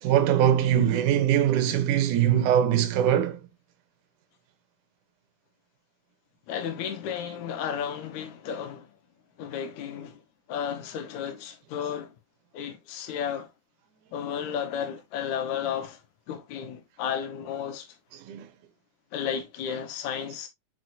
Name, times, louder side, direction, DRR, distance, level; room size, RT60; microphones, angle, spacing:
voice 1, 0.0-3.4 18.1-18.5, right 10 dB, 85° right, 2.4 m, -22 dB
voice 2, 6.5-8.9 9.4-10.2 10.5-12.1 12.5-13.5 14.1-16.0 16.3-18.0 19.1-20.5, left 8 dB, 70° left, 2.5 m, -33 dB
6.2 x 6.1 x 2.6 m
omnidirectional pair, 3.5 m